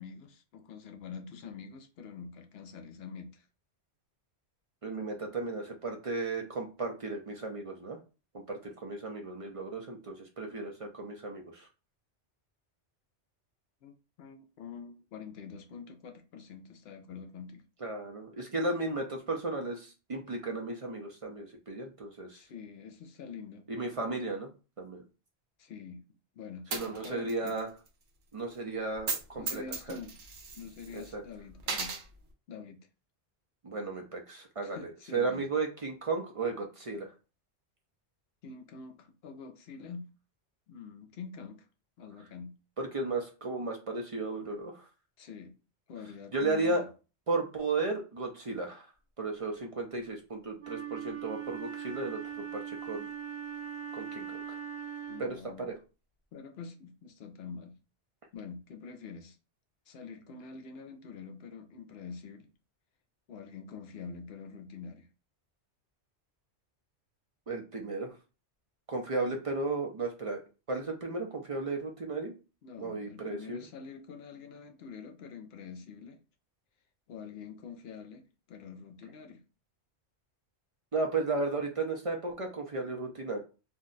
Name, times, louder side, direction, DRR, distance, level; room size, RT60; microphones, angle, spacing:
voice 1, 0.0-3.4 13.8-17.6 22.3-23.7 25.6-26.0 26.3-27.6 29.4-30.2 30.5-32.0 32.5-32.8 34.6-35.5 38.4-40.1 40.7-41.7 42.0-42.6 45.2-45.6 45.9-46.9 55.1-55.7 56.3-57.8 58.3-59.4 59.9-62.5 63.3-65.1 72.6-76.2 77.1-79.4, left 5 dB, 70° left, 0.8 m, -46 dB
voice 2, 4.8-8.0 8.3-11.7 17.8-22.4 23.7-24.5 24.8-25.0 26.7-27.7 28.3-29.6 29.9-30.0 30.9-31.2 33.6-37.1 42.8-44.9 46.3-46.9 47.3-48.9 49.2-53.1 53.9-54.6 55.2-55.7 67.5-68.1 68.9-70.4 70.7-72.3 72.8-73.6 80.9-83.4, right 3 dB, 45° right, 0.4 m, -34 dB
Coin (dropping), 26.7-27.6 27.9-28.0 29.0-29.2 29.5-31.1 31.6-32.0, right 5 dB, 85° right, 1.0 m, -36 dB
Wind instrument woodwind instrument, 50.6-55.4, right 8 dB, 65° right, 1.2 m, -40 dB
2.6 x 2.1 x 3.8 m
omnidirectional pair, 1.2 m